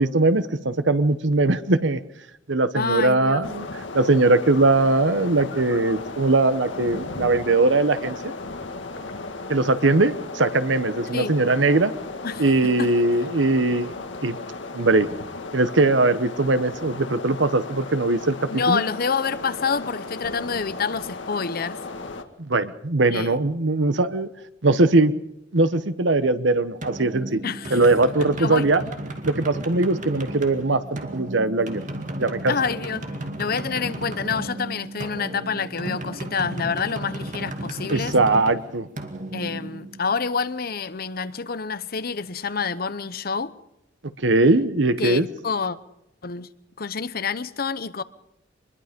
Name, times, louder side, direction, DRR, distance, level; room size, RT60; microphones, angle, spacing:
voice 1, 0.0-2.0 2.5-3.7 3.9-8.3 9.5-11.9 12.4-14.4 14.7-15.1 15.5-18.8 22.4-24.3 24.6-25.1 25.5-27.4 27.7-28.8 29.2-31.8 32.2-32.5 37.9-38.9 44.2-45.3, right 2 dB, 75° right, 1.1 m, -20 dB
voice 2, 2.7-3.5 11.1-11.4 12.2-12.9 18.5-21.8 23.1-23.4 27.4-27.8 28.4-28.7 32.5-33.1 33.4-38.2 39.3-43.5 45.0-45.8 46.2-46.5 46.8-48.0, left 5 dB, 55° left, 0.9 m, -27 dB
sound 1, 3.4-22.2, left 3 dB, 80° left, 1.8 m, -35 dB
sound 2, 26.8-40.4, right 1 dB, 45° right, 2.4 m, -34 dB
24.5 x 21.0 x 5.3 m
head